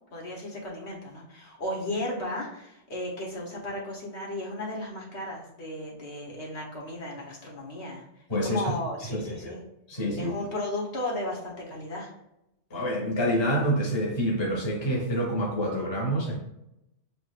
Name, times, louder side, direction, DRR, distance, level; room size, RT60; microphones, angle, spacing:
voice 1, 0.1-8.1 8.4-9.6 10.2-12.1, left 1 dB, 65° left, -3 dB, 1.4 m, -35 dB
voice 2, 8.3-8.6 9.1-9.6 9.9-10.3 12.7-16.4, equal, 25° left, -2 dB, 1.0 m, -27 dB
7.0 x 2.5 x 2.4 m, 0.85 s
omnidirectional pair, 1.3 m